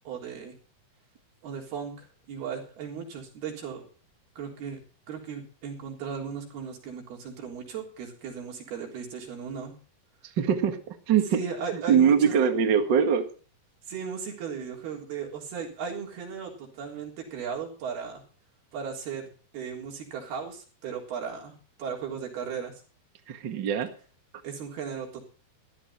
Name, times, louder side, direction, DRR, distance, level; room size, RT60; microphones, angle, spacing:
voice 1, 0.1-0.6 1.4-3.9 4.4-4.8 5.1-9.7 11.3-12.5 13.9-18.2 18.7-22.7 24.4-25.2, right 6 dB, 85° right, 0 dB, 5.7 m, -36 dB
voice 2, 10.4-10.8 11.1-11.4 11.7-13.3 23.3-23.9, right 7 dB, 45° right, 6 dB, 1.6 m, -22 dB
14.5 x 13.0 x 4.4 m, 0.39 s
omnidirectional pair, 4.3 m